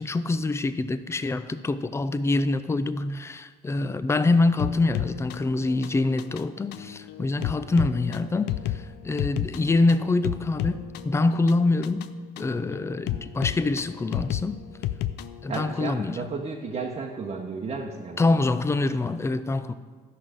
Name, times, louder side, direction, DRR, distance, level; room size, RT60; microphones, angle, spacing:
voice 1, 0.0-12.1 12.4-14.6 15.4-16.2 18.2-19.7, left 2 dB, 15° left, 12 dB, 0.5 m, -25 dB
sound 1, 4.6-15.8, left 13 dB, 85° left, 0.5 m, -33 dB
voice 2, 15.5-18.2, right 4 dB, 40° right, 0 dB, 1.0 m, -33 dB
13.0 x 6.0 x 5.0 m, 1.6 s
cardioid pair, 110°, 17 cm